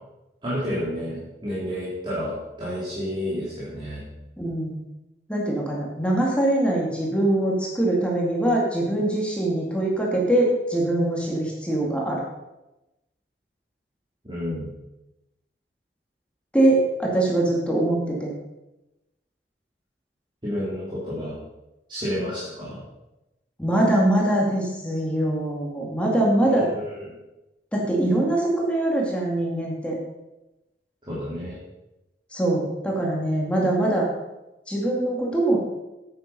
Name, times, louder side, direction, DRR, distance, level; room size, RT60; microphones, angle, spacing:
voice 1, 0.4-4.0 14.2-14.7 20.4-21.4 21.9-22.8 26.5-27.1 31.1-31.6, equal, 25° right, -8 dB, 3.0 m, -30 dB
voice 2, 4.4-4.8 5.3-12.2 16.5-18.3 23.6-26.7 27.7-30.0 32.3-34.0 34.7-35.6, right 1 dB, 5° left, -3 dB, 2.3 m, -23 dB
9.3 x 8.9 x 5.4 m, 0.97 s
head